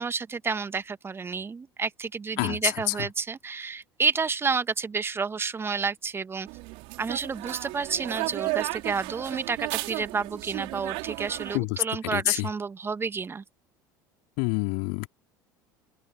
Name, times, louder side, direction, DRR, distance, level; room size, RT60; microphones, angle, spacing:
voice 1, 0.0-6.5 7.0-13.4, right 5 dB, 20° right, 1.7 m, -30 dB
voice 2, 2.4-2.9 11.5-12.5 14.4-15.1, left 39 dB, 60° left, 4.6 m, -27 dB
sound 1, 6.5-11.6, right 25 dB, 55° right, 3.9 m, -34 dB
open air
figure-of-eight pair, 70°, 11 cm